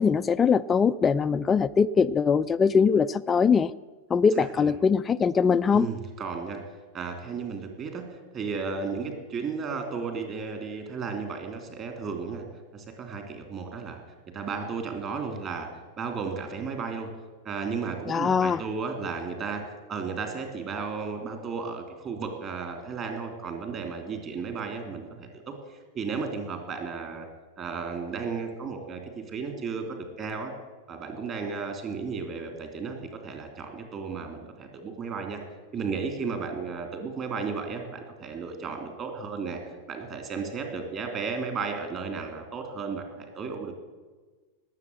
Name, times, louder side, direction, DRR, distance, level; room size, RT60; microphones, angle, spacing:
voice 1, 0.0-3.7 4.1-5.9 18.1-18.6, left 6 dB, 20° left, 9 dB, 0.4 m, -22 dB
voice 2, 4.3-4.7 5.7-6.6 6.9-12.4 12.7-14.0 14.3-15.7 16.0-17.1 17.4-19.6 19.9-27.3 27.6-30.5 30.9-35.4 35.7-39.6 39.9-43.7, right 5 dB, 30° right, 5 dB, 3.3 m, -34 dB
19.0 x 7.9 x 8.1 m, 1.3 s
figure-of-eight pair, 90°, 0 cm